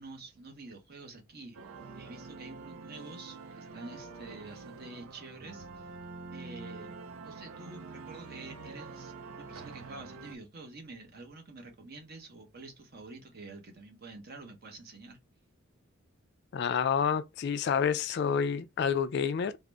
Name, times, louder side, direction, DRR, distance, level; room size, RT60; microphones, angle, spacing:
voice 1, 0.0-1.6 1.9-5.9 6.3-7.0 7.2-15.2, right 3 dB, 45° right, 0.9 m, -48 dB
sound 1, 1.5-10.4, right 4 dB, 80° right, 0.5 m, -46 dB
voice 2, 16.5-19.6, left 7 dB, 50° left, 0.3 m, -29 dB
3.7 x 2.0 x 3.3 m
head